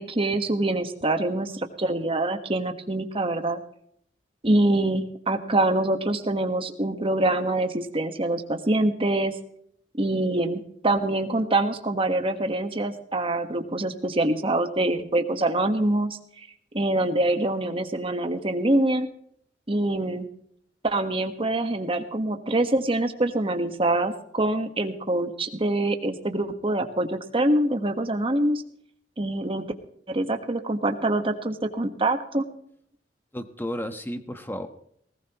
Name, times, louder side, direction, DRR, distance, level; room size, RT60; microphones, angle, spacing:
voice 1, 0.0-3.6 4.4-9.3 10.0-16.2 16.7-19.1 19.7-20.3 20.8-28.6 29.2-29.7 30.1-32.4, right 2 dB, 30° right, 6 dB, 1.5 m, -25 dB
voice 2, 33.3-34.7, equal, 10° left, 8 dB, 1.3 m, -33 dB
19.0 x 17.5 x 3.1 m, 0.67 s
head